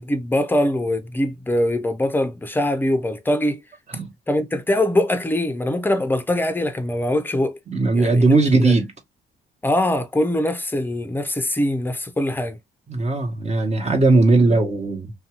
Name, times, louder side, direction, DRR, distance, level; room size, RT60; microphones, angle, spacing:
voice 1, 0.0-3.6 4.3-7.6 7.9-8.7 9.6-12.6, left 1 dB, 10° left, 0.6 m, -22 dB
voice 2, 7.7-8.9 12.9-15.1, right 2 dB, 35° right, 1.1 m, -18 dB
2.7 x 2.3 x 2.9 m
cardioid pair, 90°, 20 cm